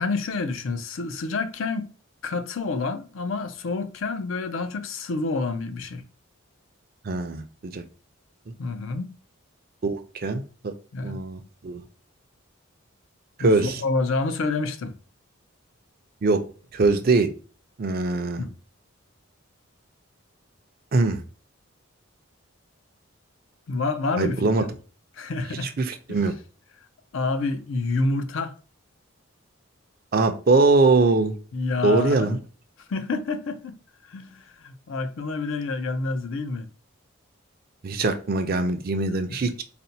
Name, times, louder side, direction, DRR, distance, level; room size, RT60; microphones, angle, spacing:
voice 1, 0.0-1.9 2.2-6.0 8.6-9.1 10.9-11.2 13.4-14.9 18.4-18.5 23.7-24.7 25.2-25.7 26.1-26.3 27.1-28.5 31.5-32.4 32.9-33.8 34.1-36.7 39.3-39.5, left 3 dB, 70° left, 0.4 m, -28 dB
voice 2, 7.1-7.8 9.8-10.7 11.0-11.8 13.4-13.8 16.2-16.4 16.7-17.3 17.8-18.4 20.9-21.2 24.2-24.6 25.8-26.3 30.1-31.3 31.8-32.4 37.8-39.6, right 3 dB, 45° right, 0.4 m, -22 dB
4.1 x 2.1 x 2.7 m
head